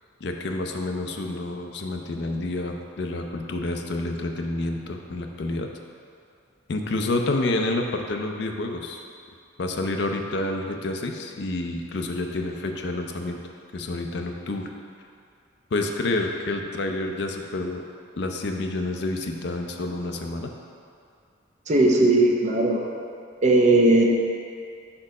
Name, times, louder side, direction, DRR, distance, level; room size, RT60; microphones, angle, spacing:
voice 1, 0.2-5.7 6.7-9.0 9.6-13.4 13.7-14.7 15.7-17.8 18.2-20.5, left 2 dB, 55° left, 3 dB, 0.5 m, -28 dB
voice 2, 21.7-22.8 23.4-24.0, right 2 dB, 35° right, -1 dB, 0.6 m, -18 dB
4.8 x 4.4 x 5.3 m, 2.4 s
head